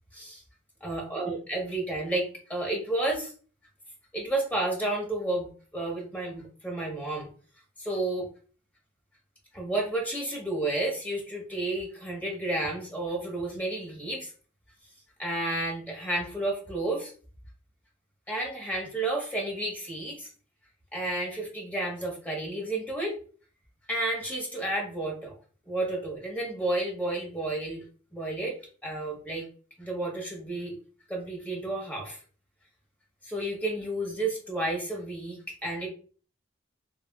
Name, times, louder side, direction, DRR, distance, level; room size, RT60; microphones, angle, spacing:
voice 1, 0.8-3.3 4.1-7.3 7.8-8.3 9.5-14.3 15.2-17.1 18.3-20.3 20.9-23.1 23.9-25.3 25.7-27.8 28.1-28.6 28.8-29.5 29.8-30.7 31.1-32.2 33.2-35.9, right 2 dB, 10° left, -1 dB, 1.0 m, -31 dB
3.4 x 2.4 x 2.3 m, 0.40 s
head